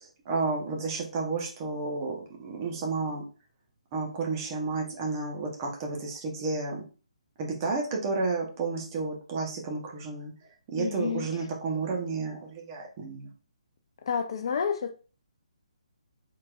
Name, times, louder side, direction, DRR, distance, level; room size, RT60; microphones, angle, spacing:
voice 1, 0.2-3.2 3.9-6.8 7.4-10.3 10.7-13.3, right 3 dB, 30° right, 1.2 m, -31 dB
voice 2, 10.8-11.3 14.0-14.9, left 6 dB, 45° left, 0.4 m, -30 dB
4.4 x 3.8 x 2.6 m
figure-of-eight pair, 135°, 4 cm